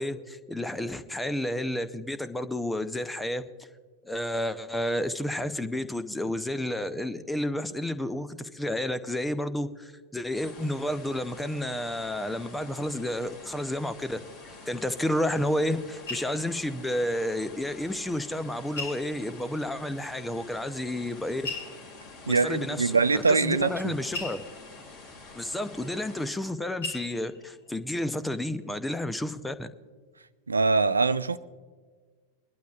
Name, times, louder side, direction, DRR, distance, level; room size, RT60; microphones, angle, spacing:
voice 1, 0.0-3.5 4.0-21.5 22.3-24.4 25.3-29.7, left 1 dB, 5° left, 0.7 m, -31 dB
sound 1, 10.3-26.3, left 3 dB, 40° left, 2.4 m, -48 dB
sound 2, 15.4-17.7 18.0-18.1 18.8-19.7 20.5-20.6 21.4-26.5 26.8-27.7 28.2-28.5 28.8-28.9, left 3 dB, 65° left, 2.4 m, -41 dB
voice 2, 22.3-23.9 30.5-31.4, right 4 dB, 75° right, 0.4 m, -23 dB
23.5 x 11.5 x 2.4 m
figure-of-eight pair, 90°, 0 cm